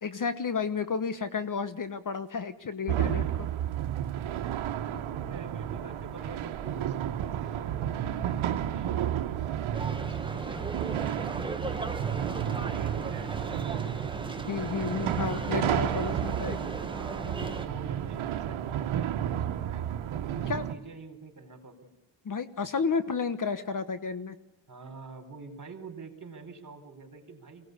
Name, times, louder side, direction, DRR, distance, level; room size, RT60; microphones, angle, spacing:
voice 1, 0.0-3.5 14.5-16.6 20.5-20.6 22.2-24.4, left 5 dB, 40° left, 12 dB, 1.2 m, -31 dB
sound 1, 2.9-20.8, right 10 dB, 85° right, 1.4 m, -32 dB
voice 2, 4.7-9.6 10.0-11.5 11.8-14.0 16.0-19.8 20.2-21.9 24.7-27.7, right 4 dB, 40° right, 6 dB, 4.8 m, -47 dB
sound 2, 9.7-17.7, right 2 dB, 10° right, 1.6 m, -37 dB
23.5 x 18.0 x 8.3 m, 0.96 s
cardioid pair, 100°, 47 cm